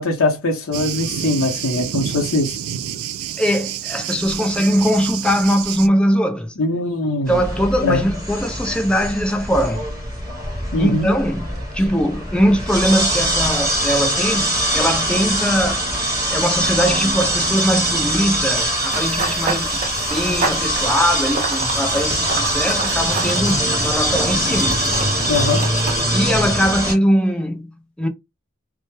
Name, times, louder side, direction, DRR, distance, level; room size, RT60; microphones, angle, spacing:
voice 1, 0.0-2.6 6.6-7.4 7.8-8.0 10.7-11.1 25.3-25.7, left 2 dB, 70° left, 0.6 m, -21 dB
Thunder, 0.7-5.9, right 9 dB, 90° right, 0.3 m, -28 dB
voice 2, 3.4-6.6 7.3-9.9 10.8-15.9 16.3-24.9 26.1-28.1, equal, 5° left, 0.4 m, -21 dB
sound 1, 7.3-26.9, right 1 dB, 15° right, 1.0 m, -22 dB
Run / Bird vocalization bird call bird song, 18.6-26.0, right 4 dB, 40° right, 0.6 m, -29 dB
2.2 x 2.0 x 2.9 m
head